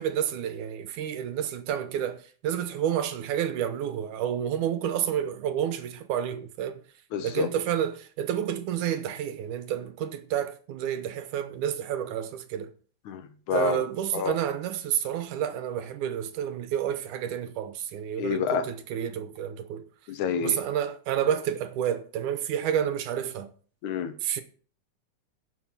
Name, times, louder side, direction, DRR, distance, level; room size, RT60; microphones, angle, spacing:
voice 1, 0.0-6.8 7.2-12.7 13.5-19.9 20.4-23.5 24.2-24.4, right 10 dB, 85° right, 2.5 m, -30 dB
voice 2, 7.1-7.5 13.1-13.8 14.1-14.4 18.2-18.7 20.1-20.6 23.8-24.1, left 7 dB, 75° left, 2.6 m, -28 dB
11.0 x 6.4 x 7.6 m
omnidirectional pair, 3.5 m